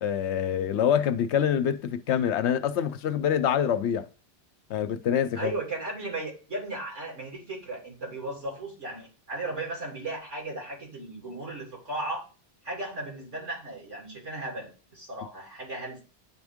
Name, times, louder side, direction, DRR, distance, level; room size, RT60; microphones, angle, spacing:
voice 1, 0.0-4.1 4.7-5.5, left 9 dB, 70° left, 0.8 m, -25 dB
voice 2, 5.3-12.3 12.6-16.0, right 2 dB, 85° right, 3.3 m, -36 dB
10.0 x 3.5 x 3.5 m
omnidirectional pair, 1.2 m